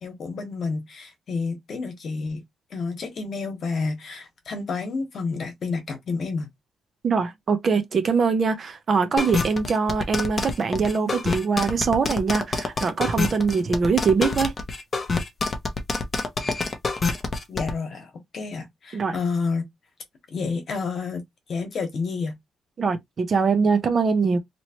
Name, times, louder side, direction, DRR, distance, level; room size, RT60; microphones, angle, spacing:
voice 1, 0.0-2.4 2.7-6.5 17.5-19.7 20.3-21.2 21.5-22.3, left 4 dB, 45° left, 1.2 m, -29 dB
voice 2, 7.0-14.5 18.9-19.2 22.8-24.4, right 5 dB, 35° right, 0.6 m, -23 dB
sound 1, 9.2-17.7, left 3 dB, 25° left, 0.7 m, -26 dB
3.0 x 2.9 x 2.9 m
cardioid pair, 155°, 0 cm